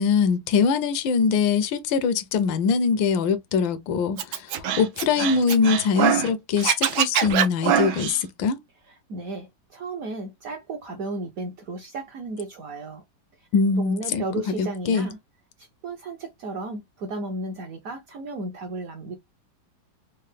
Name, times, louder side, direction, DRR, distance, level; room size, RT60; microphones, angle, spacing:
voice 1, 0.0-8.6 13.5-14.2 14.6-15.1, left 5 dB, 80° left, 1.4 m, -22 dB
Scratching (performance technique), 4.2-6.3 6.6-8.2, right 9 dB, 85° right, 1.5 m, -23 dB
voice 2, 8.9-13.0 13.8-15.2 15.6-19.2, right 2 dB, 65° right, 0.9 m, -34 dB
4.3 x 2.1 x 3.2 m
omnidirectional pair, 2.1 m